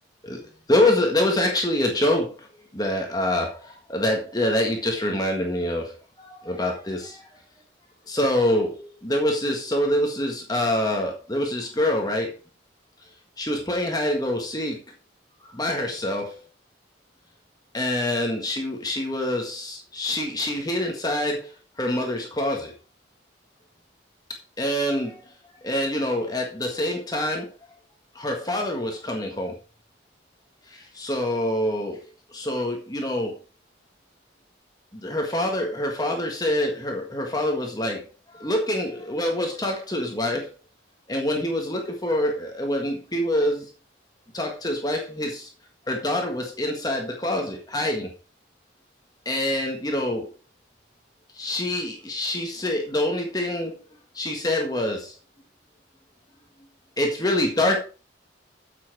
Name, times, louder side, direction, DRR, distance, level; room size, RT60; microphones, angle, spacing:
voice 1, 0.7-2.5 2.7-7.3 8.1-12.3 13.4-14.8 15.4-16.4 17.7-21.5 21.8-22.7 24.6-25.2 25.6-27.5 28.1-29.6 30.7-32.0 32.3-33.3 34.9-40.5 41.1-43.7 44.3-45.5 45.9-48.1 49.2-50.3 51.3-53.8 54.1-55.1 57.0-57.8, left 1 dB, 20° left, 1 dB, 1.6 m, -25 dB
8.2 x 7.6 x 4.8 m, 0.33 s
head